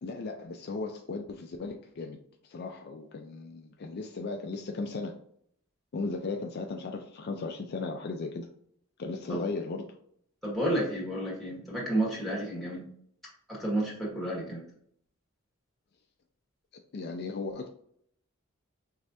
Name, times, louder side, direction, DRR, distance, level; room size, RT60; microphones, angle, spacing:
voice 1, 0.0-2.2 2.4-5.1 5.9-8.5 9.0-9.9 16.9-17.7, left 3 dB, 50° left, 3 dB, 0.4 m, -36 dB
voice 2, 10.4-12.9 13.5-14.6, right 1 dB, ahead, -6 dB, 1.6 m, -31 dB
4.7 x 3.2 x 2.6 m, 0.67 s
head